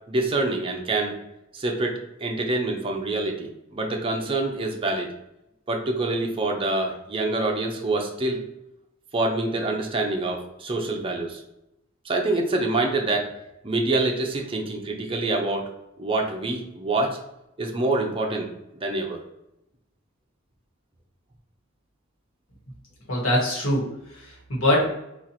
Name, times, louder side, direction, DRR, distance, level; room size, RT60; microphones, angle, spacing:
voice 1, 0.1-1.1 1.5-5.1 5.7-8.4 9.1-11.4 12.0-13.3 13.6-15.7 16.0-17.2 17.6-18.5 18.8-19.2, right 2 dB, 25° right, 1 dB, 0.5 m, -26 dB
voice 2, 23.1-24.9, left 1 dB, 75° left, -3 dB, 1.3 m, -23 dB
2.9 x 2.4 x 4.0 m, 0.85 s
head